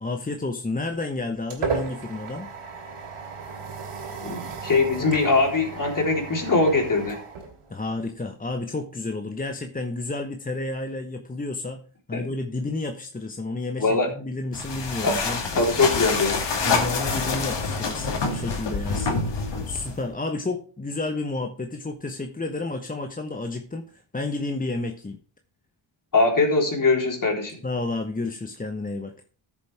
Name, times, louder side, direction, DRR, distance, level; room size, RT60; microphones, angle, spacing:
voice 1, 0.0-2.5 7.7-11.8 12.1-15.4 16.6-25.2 27.6-29.1, left 2 dB, 15° left, 5 dB, 1.0 m, -31 dB
sound 1, 0.8-8.2, right 5 dB, 85° right, 2.9 m, -35 dB
voice 2, 4.2-7.2 12.1-12.2 13.8-14.1 15.0-15.1 15.6-16.4 26.1-27.5, left 3 dB, 40° left, 1 dB, 3.7 m, -22 dB
sound 2, 14.5-20.1, left 4 dB, 55° left, 2.4 m, -27 dB
14.0 x 7.3 x 3.4 m, 0.40 s
cardioid pair, 85°, 50 cm